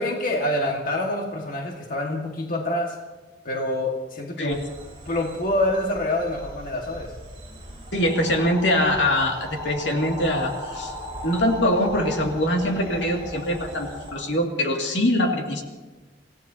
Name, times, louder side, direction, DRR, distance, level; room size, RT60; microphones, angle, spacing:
voice 1, 0.0-2.9 3.4-4.6 5.0-7.1, left 1 dB, 50° left, 0 dB, 1.7 m, -26 dB
sound 1, 4.5-14.1, left 1 dB, 30° right, 6.7 m, -37 dB
voice 2, 7.9-10.9 11.2-15.6, left 1 dB, 80° left, 1 dB, 2.2 m, -23 dB
27.0 x 16.5 x 2.8 m, 1.2 s
head